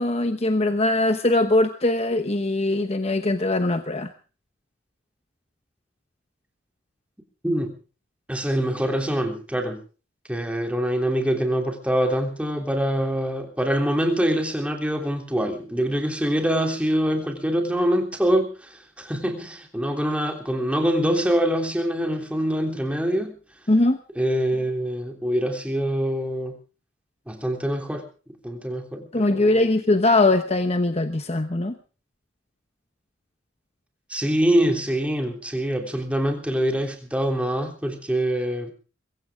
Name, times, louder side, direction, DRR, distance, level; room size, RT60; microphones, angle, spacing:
voice 1, 0.0-4.1 23.7-24.0 29.1-31.7, left 2 dB, 35° left, 8 dB, 1.0 m, -21 dB
voice 2, 7.4-7.7 8.3-9.8 10.3-23.4 24.1-26.5 27.3-28.1 28.4-29.1 29.3-29.7 34.1-38.7, equal, 5° right, 3 dB, 3.3 m, -24 dB
23.0 x 15.5 x 3.7 m, 0.37 s
head